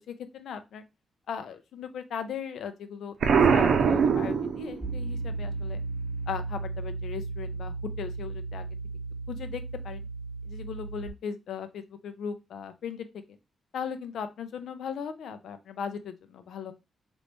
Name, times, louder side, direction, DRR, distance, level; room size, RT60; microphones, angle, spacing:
voice 1, 0.1-0.8 1.3-5.8 6.3-8.7 9.3-10.0 10.4-13.4 13.7-16.7, left 7 dB, 75° left, 9 dB, 0.6 m, -38 dB
Explosion, 3.2-5.0, right 6 dB, 65° right, 0.6 m, -22 dB
Piano, 4.8-11.1, right 3 dB, ahead, 0.8 m, -35 dB
4.0 x 3.1 x 3.4 m, 0.24 s
cardioid pair, 130°, 0 cm